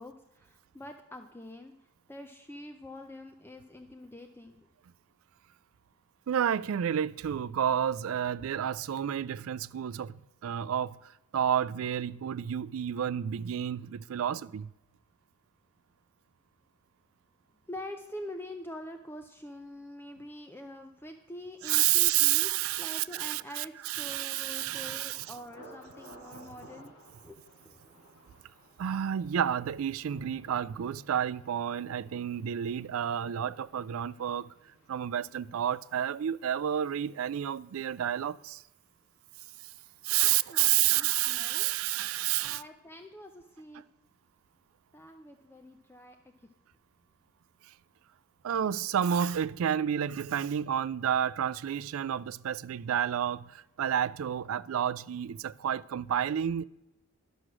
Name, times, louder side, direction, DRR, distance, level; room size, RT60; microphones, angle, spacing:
voice 1, 0.0-1.7 2.1-4.7 17.7-26.9 27.2-27.9 39.9-41.7 42.4-43.8 44.9-46.2 46.4-46.5, left 1 dB, 10° left, 0.5 m, -45 dB
voice 2, 6.3-14.7 21.6-25.3 28.8-34.5 34.9-38.6 39.6-39.7 40.0-42.6 47.6-47.7 48.4-56.6, right 10 dB, 70° right, 0.3 m, -30 dB
Thunder, 23.9-39.7 39.9-40.6 41.0-41.3, right 1 dB, 65° left, 3.7 m, -57 dB
12.0 x 6.2 x 6.0 m
head